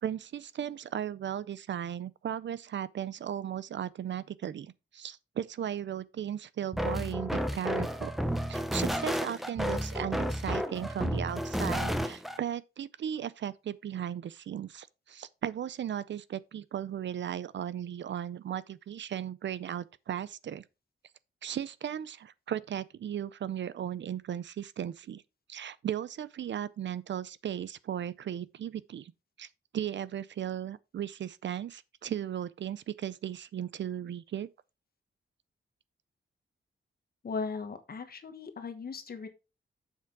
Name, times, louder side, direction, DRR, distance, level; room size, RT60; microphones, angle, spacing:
voice 1, 0.0-8.1 8.5-20.6 21.4-25.2 25.5-29.1 29.4-29.5 29.7-34.5, right 10 dB, 60° right, 0.5 m, -36 dB
sound 1, 6.7-12.4, equal, ahead, 0.8 m, -31 dB
voice 2, 37.2-39.3, left 4 dB, 45° left, 1.3 m, -37 dB
7.2 x 5.9 x 4.6 m
wide cardioid pair, 170°, 21 cm